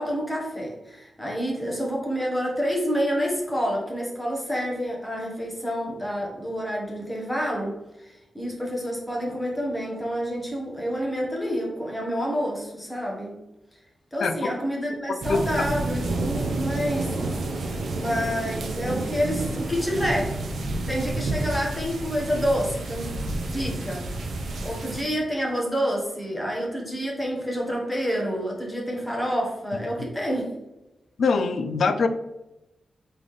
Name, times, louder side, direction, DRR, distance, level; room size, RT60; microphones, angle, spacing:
voice 1, 0.0-13.4 14.1-17.1 17.9-20.4 20.9-23.1 23.5-24.1 24.6-30.6, equal, 10° left, -2 dB, 1.3 m, -28 dB
sound 1, 15.2-25.0, right 2 dB, 80° right, 0.7 m, -30 dB
voice 2, 15.3-15.6 31.2-32.1, left 4 dB, 75° left, 9 dB, 0.4 m, -23 dB
3.8 x 3.8 x 3.2 m, 0.96 s
wide cardioid pair, 110°, 0 cm